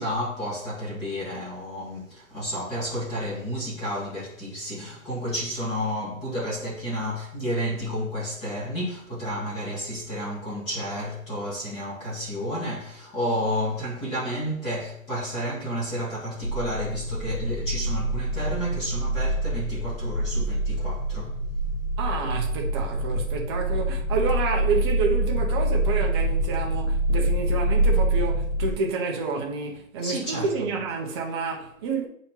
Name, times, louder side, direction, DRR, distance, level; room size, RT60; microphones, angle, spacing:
voice 1, 0.0-21.4 22.5-22.6 30.0-30.7, equal, 15° left, 1.9 m, -31 dB
sound 1, 16.4-28.7, right 1 dB, 90° left, 1.1 m, -26 dB
voice 2, 22.0-32.1, right 4 dB, 20° right, 0.8 m, -29 dB
9.3 x 4.3 x 2.9 m
hypercardioid pair, 155°, 43 cm